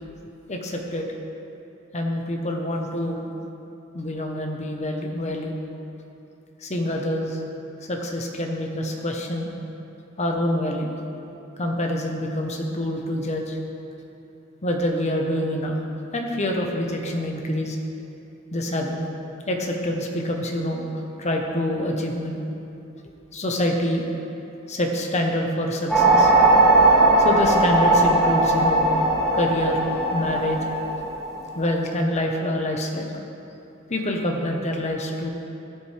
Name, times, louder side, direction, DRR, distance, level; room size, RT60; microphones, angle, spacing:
voice 1, 0.5-1.1 1.9-3.2 3.9-5.5 6.6-7.4 7.8-9.5 10.2-10.9 11.6-13.6 14.6-15.7 16.1-17.8 18.5-19.0 19.5-20.9 21.2-22.4 23.3-24.0 24.7-26.3 27.2-29.0 29.3-30.6 31.5-33.1 33.9-35.3, left 1 dB, 35° left, 2 dB, 1.0 m, -26 dB
sound 1, 25.9-31.6, right 2 dB, ahead, 2.1 m, -18 dB
15.0 x 8.7 x 3.4 m, 2.8 s
head